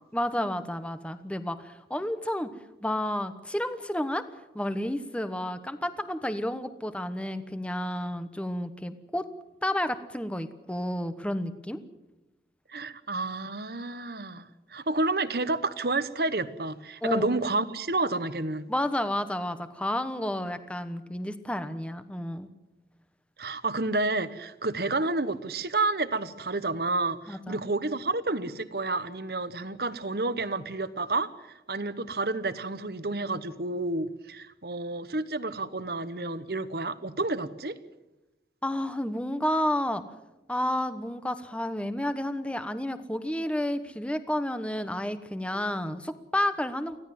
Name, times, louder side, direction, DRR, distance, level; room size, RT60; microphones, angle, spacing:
voice 1, 0.1-2.5 2.8-4.2 4.5-9.2 9.6-11.8 17.0-17.3 18.7-22.5 27.3-27.6 38.6-40.0 40.5-47.0, left 1 dB, 5° left, 11 dB, 1.0 m, -31 dB
voice 2, 12.7-18.7 23.4-31.3 31.7-37.8, right 2 dB, 60° right, 14 dB, 1.1 m, -30 dB
25.0 x 16.5 x 7.7 m, 0.98 s
head